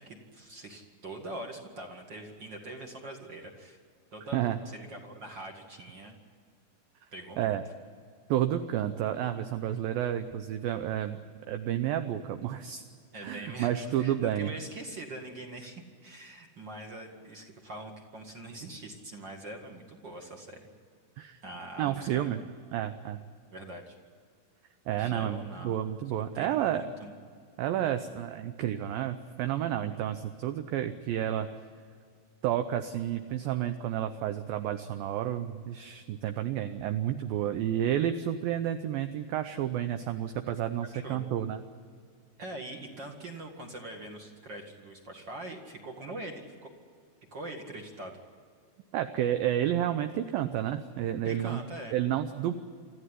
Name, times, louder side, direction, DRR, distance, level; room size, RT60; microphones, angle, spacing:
voice 1, 0.0-3.8 4.1-6.1 7.1-7.6 13.1-20.7 21.4-22.3 23.5-24.0 25.0-25.9 26.3-27.1 40.9-41.2 42.4-46.7 47.3-48.1 51.2-52.0, right 1 dB, 40° right, 3 dB, 1.7 m, -43 dB
voice 2, 8.3-11.2 11.5-12.8 13.2-14.5 21.2-21.4 21.8-22.4 22.7-23.2 24.9-26.8 27.6-31.5 32.4-41.6 48.9-51.6 51.9-52.5, right 11 dB, 75° right, 9 dB, 2.2 m, -30 dB
26.0 x 14.5 x 9.9 m, 2.1 s
omnidirectional pair, 5.0 m